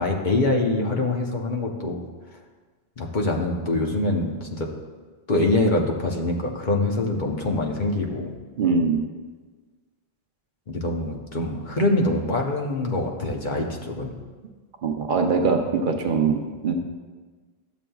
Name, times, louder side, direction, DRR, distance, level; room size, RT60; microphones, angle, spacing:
voice 1, 0.0-2.0 3.0-4.7 5.3-8.3 10.7-14.2, left 2 dB, 50° left, 1 dB, 0.9 m, -24 dB
voice 2, 8.6-9.0 14.8-16.7, right 4 dB, 55° right, 4 dB, 0.8 m, -22 dB
12.5 x 7.2 x 2.3 m, 1.4 s
omnidirectional pair, 1.1 m